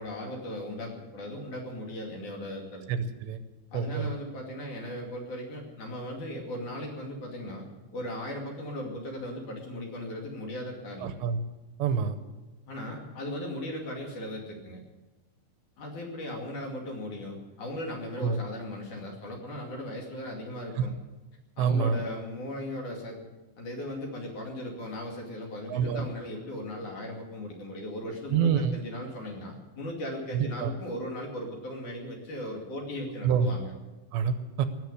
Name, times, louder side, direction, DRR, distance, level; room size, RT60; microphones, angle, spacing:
voice 1, 0.0-2.8 3.7-7.7 7.9-11.1 12.7-14.8 15.8-20.9 21.6-23.2 23.6-33.7, left 1 dB, 50° left, 0 dB, 3.5 m, -37 dB
voice 2, 2.9-3.4 3.7-4.1 11.0-11.4 11.8-12.2 18.2-18.4 20.8-20.9 21.6-22.0 25.7-26.1 28.3-28.7 30.3-30.7 33.2-33.5 34.1-34.7, right 7 dB, 80° right, 10 dB, 3.0 m, -26 dB
18.5 x 7.6 x 9.8 m, 1.1 s
omnidirectional pair, 5.3 m